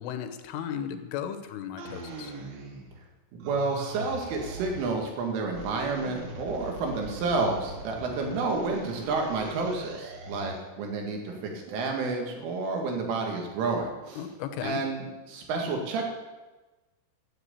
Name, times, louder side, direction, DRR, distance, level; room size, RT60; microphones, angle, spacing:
voice 1, 0.0-2.3 14.2-14.8, left 9 dB, 90° left, 9 dB, 3.6 m, -35 dB
sound 1, 1.8-3.1 3.4-5.1 5.5-10.7, right 2 dB, 70° right, 3.9 m, -41 dB
voice 2, 3.3-14.2 14.6-16.1, right 3 dB, 90° right, 1 dB, 4.7 m, -30 dB
12.0 x 8.0 x 8.4 m, 1.2 s
omnidirectional pair, 5.5 m